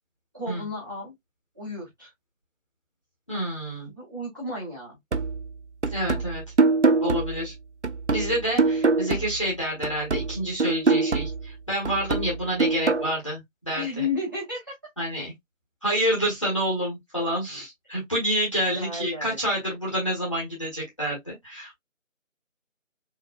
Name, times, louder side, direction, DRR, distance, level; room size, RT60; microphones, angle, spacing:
voice 1, 0.3-1.1 1.5-2.1 3.9-5.0 13.7-14.8 18.7-19.4, left 3 dB, 15° right, 2.1 m, -33 dB
voice 2, 3.3-3.9 5.9-6.4 7.0-7.5 8.1-14.0 15.0-15.3 15.8-21.8, equal, 25° left, 1.4 m, -28 dB
sound 1, 5.1-9.5 9.8-13.1, right 3 dB, 60° right, 0.6 m, -25 dB
4.6 x 3.2 x 2.5 m
figure-of-eight pair, 170°, 40 cm